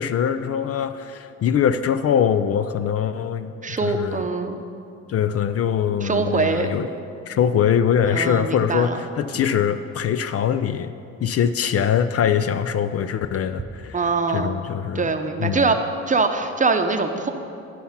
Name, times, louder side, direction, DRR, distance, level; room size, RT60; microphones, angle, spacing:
voice 1, 0.0-4.2 5.1-6.9 7.3-10.9 11.2-14.0 14.3-15.1 15.4-15.7, left 8 dB, 50° left, 11 dB, 0.4 m, -22 dB
voice 2, 3.6-4.6 6.0-6.7 8.1-9.0 9.3-9.5 13.9-14.6 14.9-15.8 16.1-17.3, right 4 dB, 25° right, 6 dB, 0.7 m, -23 dB
11.5 x 5.8 x 5.7 m, 2.6 s
cardioid pair, 90°, 30 cm